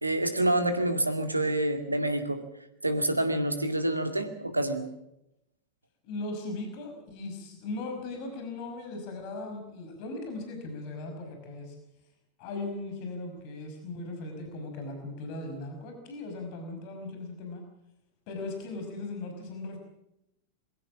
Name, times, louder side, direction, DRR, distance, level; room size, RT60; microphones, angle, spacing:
voice 1, 0.0-2.4 2.8-4.9, right 1 dB, 85° right, 8 dB, 2.3 m, -27 dB
voice 2, 6.0-11.7 12.4-17.6 18.3-19.8, left 2 dB, 45° left, 4 dB, 5.7 m, -38 dB
22.5 x 16.5 x 7.3 m, 0.83 s
figure-of-eight pair, 90°, 0 cm